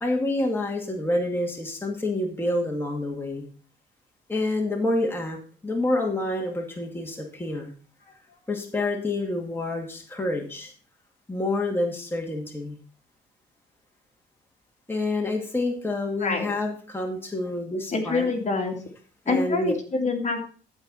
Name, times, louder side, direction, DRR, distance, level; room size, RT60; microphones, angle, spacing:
voice 1, 0.0-3.5 4.3-5.4 5.6-7.7 8.5-10.7 11.3-12.8 14.9-18.3 19.3-19.7, left 2 dB, 10° left, 0 dB, 2.2 m, -28 dB
voice 2, 16.2-16.5 17.9-18.8 19.3-20.4, left 4 dB, 35° left, 3 dB, 2.4 m, -26 dB
14.0 x 4.6 x 5.6 m, 0.41 s
cardioid pair, 90°, 20 cm